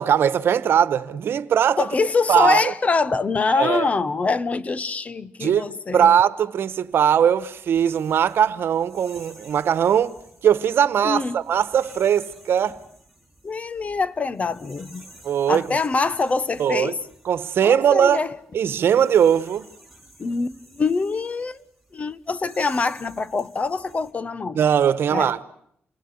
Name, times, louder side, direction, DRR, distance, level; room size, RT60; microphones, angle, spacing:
voice 1, 0.0-1.9 2.3-2.7 3.6-3.9 5.4-5.6 5.9-10.1 10.4-12.8 15.2-15.7 16.6-16.9 17.2-18.2 18.5-19.7 24.5-25.4, right 9 dB, 75° right, 1.2 m, -20 dB
voice 2, 1.8-6.1 11.0-11.4 13.4-15.0 15.5-17.0 17.6-18.3 20.2-21.6 21.9-24.6 25.1-25.3, left 4 dB, 35° left, 1.1 m, -24 dB
sound 1, 6.8-24.1, right 1 dB, ahead, 6.8 m, -51 dB
28.5 x 20.5 x 9.7 m
cardioid pair, 115°, 4 cm